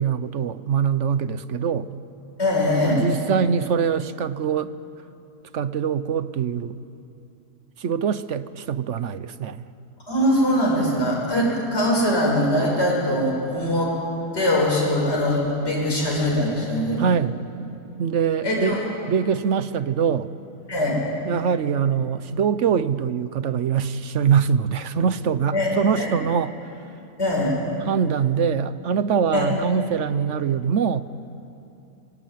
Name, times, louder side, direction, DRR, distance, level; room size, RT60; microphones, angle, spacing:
voice 1, 0.0-1.9 2.8-4.7 5.5-6.8 7.8-9.6 17.0-17.4 18.0-18.8 19.1-20.3 21.3-26.5 27.9-31.0, right 7 dB, 55° right, 14 dB, 1.0 m, -23 dB
voice 2, 2.4-3.0 10.1-13.9 14.3-17.1 18.4-18.8 20.7-21.0 25.5-25.7 25.9-26.1 27.2-27.5 29.3-29.5, left 1 dB, 40° left, -3 dB, 6.3 m, -22 dB
25.0 x 23.0 x 9.2 m, 2.8 s
omnidirectional pair, 1.7 m